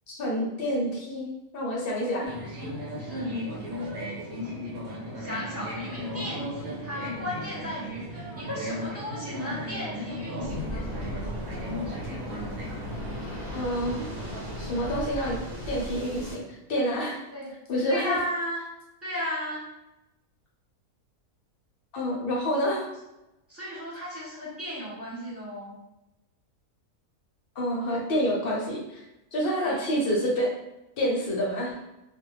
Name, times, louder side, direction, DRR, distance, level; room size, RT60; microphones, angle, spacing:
voice 1, 0.1-2.3 13.5-13.9 14.6-15.4 15.7-16.4 16.7-17.2 17.7-18.2 21.9-22.9 27.6-29.0 29.3-30.5 31.0-31.7, equal, 60° left, -3 dB, 0.6 m, -28 dB
sound 1, 2.2-16.5, left 1 dB, 80° right, 1.2 m, -36 dB
voice 2, 3.1-3.4 5.1-10.9 17.3-17.5 17.9-18.6 19.0-19.6 23.5-25.8 29.5-29.8, equal, 15° right, -8 dB, 0.4 m, -35 dB
Waves surf, 10.4-16.3, equal, 50° right, 0.9 m, -38 dB
2.5 x 2.1 x 3.0 m, 0.94 s
omnidirectional pair, 1.5 m